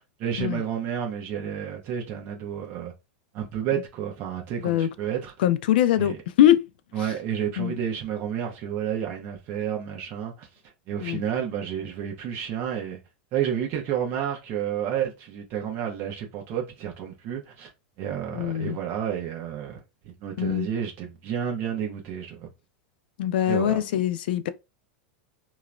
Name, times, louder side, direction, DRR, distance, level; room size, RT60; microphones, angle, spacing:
voice 1, 0.0-2.9 3.3-5.3 6.0-6.2 6.9-10.5 10.9-13.0 13.3-17.7 18.0-22.5 23.5-23.8, right 9 dB, 45° right, 0.9 m, -30 dB
voice 2, 5.4-6.6 7.6-7.7 11.0-11.2 18.3-18.8 20.4-20.7 23.2-24.5, left 11 dB, 75° left, 0.4 m, -22 dB
2.9 x 2.0 x 2.5 m
supercardioid pair, 125°, 5 cm